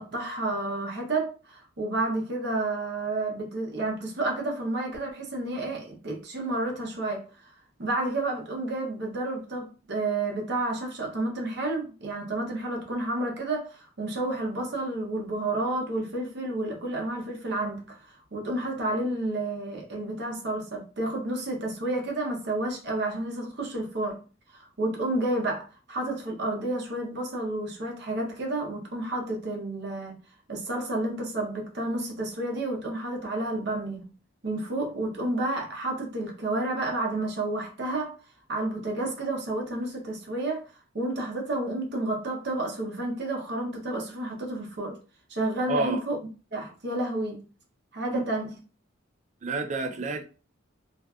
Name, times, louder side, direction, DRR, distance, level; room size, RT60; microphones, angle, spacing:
voice 1, 0.0-7.3 7.8-18.0 18.3-24.2 24.8-30.2 30.5-34.1 34.4-38.2 38.5-40.6 40.9-45.0 45.3-46.2 46.5-47.4 47.9-48.6, right 2 dB, 55° right, 0.7 m, -30 dB
voice 2, 45.7-46.0 48.1-48.2 49.4-50.2, right 3 dB, 35° right, 0.3 m, -29 dB
2.5 x 2.4 x 2.3 m
head